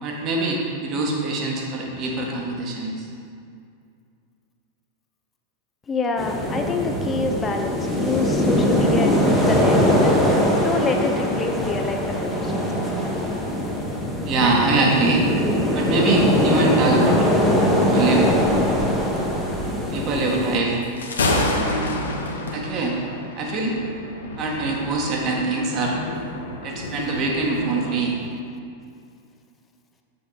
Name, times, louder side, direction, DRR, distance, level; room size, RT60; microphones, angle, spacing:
voice 1, 0.0-2.9 14.2-15.3 15.7-17.3 17.8-18.3 19.9-20.8 21.5-21.9 22.5-23.0 23.4-23.7 24.4-25.9 26.6-28.2, right 3 dB, 35° right, -1 dB, 1.5 m, -23 dB
voice 2, 5.9-12.6, left 3 dB, 20° left, 3 dB, 0.8 m, -27 dB
sound 1, 6.2-20.6, left 1 dB, ahead, 1.2 m, -21 dB
Thunder, 20.8-28.1, left 2 dB, 70° left, 0.9 m, -29 dB
7.5 x 7.0 x 4.0 m, 2.4 s
figure-of-eight pair, 90°, 0 cm